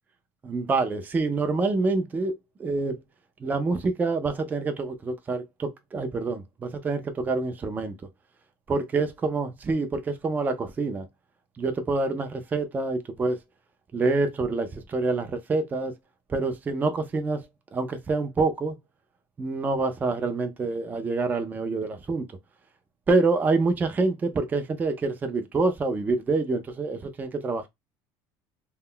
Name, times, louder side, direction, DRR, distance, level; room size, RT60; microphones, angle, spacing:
voice 1, 0.4-3.0 3.4-7.9 8.7-11.1 11.6-13.4 13.9-15.9 16.3-17.4 17.7-18.8 19.4-22.3 23.1-27.7, right 3 dB, 15° right, 0.4 m, -26 dB
2.2 x 2.0 x 3.6 m
cardioid pair, 135°, 10 cm